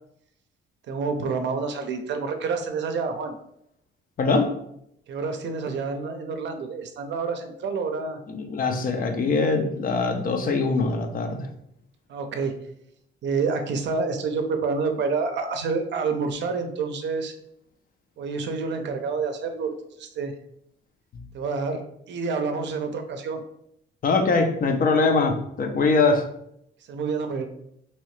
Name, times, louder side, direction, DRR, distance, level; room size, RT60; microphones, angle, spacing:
voice 1, 0.9-3.4 5.1-8.2 12.1-12.6 13.2-17.3 18.2-19.7 20.0-20.3 21.3-23.4 26.9-27.5, right 4 dB, 65° right, 6 dB, 0.5 m, -28 dB
voice 2, 4.2-4.5 8.3-11.5 21.1-21.2 24.0-26.3, left 3 dB, 45° left, 5 dB, 0.6 m, -22 dB
2.9 x 2.7 x 3.1 m, 0.74 s
cardioid pair, 90°, 20 cm